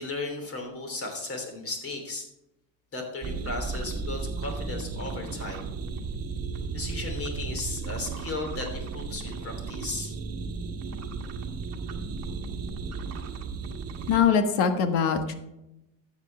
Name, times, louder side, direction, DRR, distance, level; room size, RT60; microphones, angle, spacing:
voice 1, 0.0-2.3 2.9-5.7 6.7-10.1, left 2 dB, 35° left, 4 dB, 3.2 m, -35 dB
sound 1, 3.2-14.2, right 4 dB, 35° right, 1.4 m, -34 dB
voice 2, 14.1-15.4, left 7 dB, 75° left, 8 dB, 1.5 m, -22 dB
13.0 x 8.2 x 3.4 m, 0.91 s
cardioid pair, 125°, 41 cm